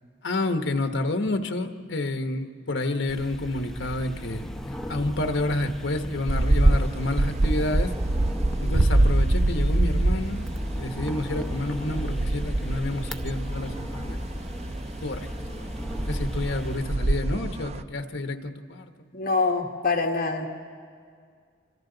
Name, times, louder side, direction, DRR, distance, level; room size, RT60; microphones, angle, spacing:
voice 1, 0.2-7.9 8.6-14.3 15.0-15.6 15.9-18.9, left 2 dB, 70° left, 7 dB, 1.1 m, -29 dB
sound 1, 3.1-16.8, equal, ahead, 0.8 m, -35 dB
sound 2, 6.3-17.8, right 1 dB, 35° right, 0.5 m, -25 dB
voice 2, 19.1-20.5, left 4 dB, 50° left, 1 dB, 1.9 m, -25 dB
26.5 x 25.5 x 3.9 m, 2.1 s
head